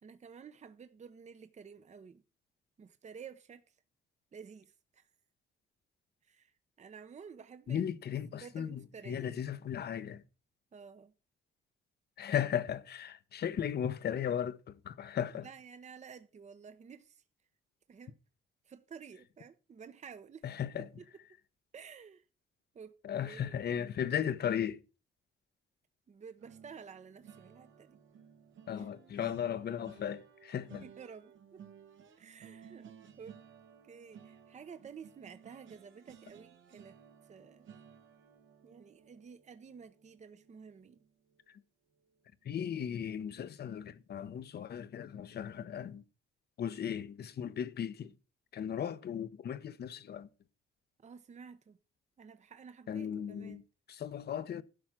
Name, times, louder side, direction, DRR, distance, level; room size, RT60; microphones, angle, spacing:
voice 1, 0.0-2.2 2.8-3.8 4.3-5.1 6.2-7.9 8.4-9.4 10.7-11.1 15.3-17.2 17.9-18.2 18.6-20.4 21.0-21.1 21.7-22.3 22.7-22.9 23.2-23.5 26.1-28.0 28.8-28.9 30.8-31.6 32.2-32.9 33.2-33.4 33.8-37.7 38.6-41.0 51.0-51.8 52.2-53.6, right 6 dB, 35° right, 0.8 m, -52 dB
voice 2, 7.7-10.2 12.2-15.5 20.4-20.9 23.0-24.8 28.7-30.8 41.5-41.6 42.4-46.0 46.6-48.1 48.5-50.3 52.9-53.6 53.9-54.6, left 9 dB, 55° left, 0.9 m, -36 dB
sound 1, 26.4-41.5 41.9-42.2 42.5-42.7, right 7 dB, 75° right, 1.5 m, -57 dB
12.0 x 4.8 x 7.3 m
cardioid pair, 90°, 20 cm